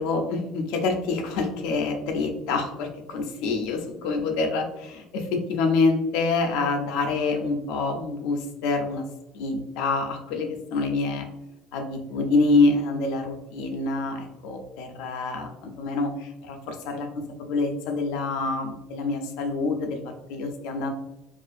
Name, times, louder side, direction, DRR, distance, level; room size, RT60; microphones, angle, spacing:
voice 1, 0.0-9.0 9.3-11.3 11.7-17.1 17.4-20.0 20.3-20.9, left 3 dB, 65° left, 4 dB, 0.4 m, -26 dB
2.5 x 2.4 x 2.4 m, 0.95 s
cardioid pair, 175°, 0 cm